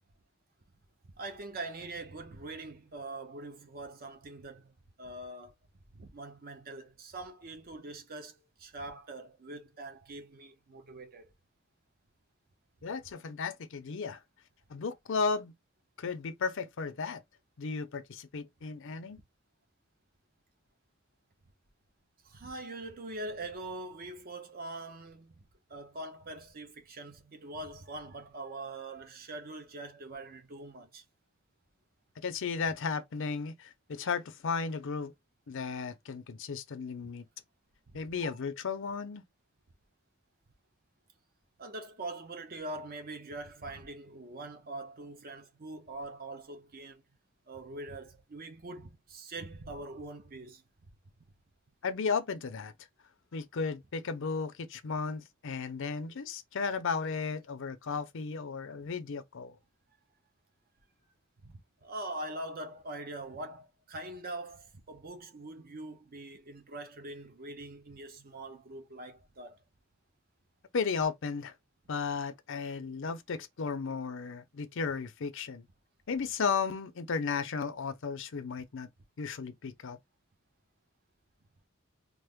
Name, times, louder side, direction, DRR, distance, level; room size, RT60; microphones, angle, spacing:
voice 1, 1.1-5.5 5.9-11.3 22.2-25.4 25.7-31.0 37.9-38.4 41.6-47.0 47.5-50.6 61.4-69.6, right 2 dB, 45° right, 0.7 m, -43 dB
voice 2, 12.8-14.2 14.7-15.5 16.0-17.2 17.6-19.2 32.2-35.1 35.5-37.3 37.9-39.2 51.8-52.7 53.3-59.5 70.7-71.5 71.9-75.7 76.1-78.9 79.2-80.0, left 5 dB, 65° left, 0.6 m, -34 dB
2.9 x 2.1 x 3.5 m
head